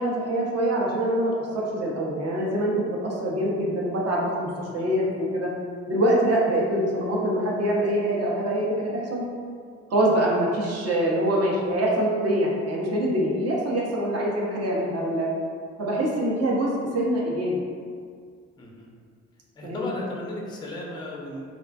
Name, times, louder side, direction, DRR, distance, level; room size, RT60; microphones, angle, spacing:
voice 1, 0.0-5.5 5.9-9.2 9.9-15.3 15.8-17.6 19.6-19.9, right 1 dB, 45° right, -3 dB, 0.7 m, -24 dB
voice 2, 4.7-5.0 18.6-18.9 19.6-21.4, left 2 dB, 15° left, -2 dB, 0.4 m, -36 dB
2.4 x 2.1 x 2.4 m, 2.1 s
hypercardioid pair, 50°, 35 cm